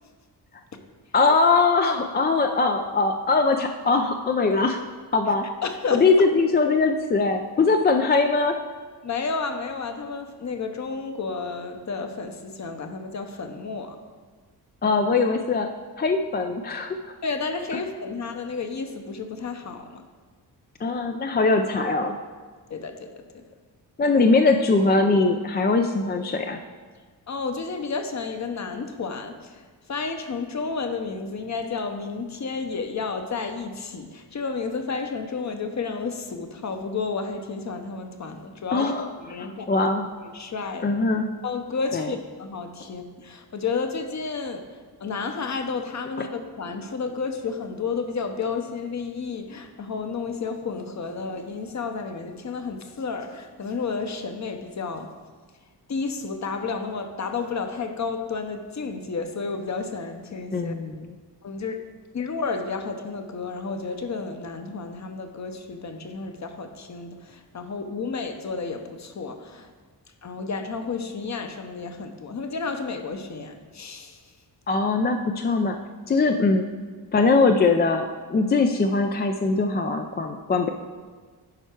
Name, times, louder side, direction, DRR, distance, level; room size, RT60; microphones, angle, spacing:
voice 1, 1.1-4.8 5.1-5.5 5.9-8.6 14.8-15.7 16.0-17.0 20.8-22.1 24.0-26.6 38.7-39.1 39.4-40.1 40.8-41.3 41.9-42.1 60.5-61.2 74.7-75.8 76.1-76.7 77.1-80.7, left 3 dB, 25° left, 5 dB, 0.4 m, -21 dB
voice 2, 5.6-6.3 9.0-14.0 17.2-20.0 22.7-23.5 27.3-38.9 39.2-39.9 40.2-40.9 41.4-55.1 55.9-60.7 61.4-61.8 62.1-69.7 70.2-74.2, left 4 dB, 40° left, 6 dB, 0.9 m, -31 dB
10.5 x 4.5 x 4.5 m, 1.5 s
cardioid pair, 100°, 41 cm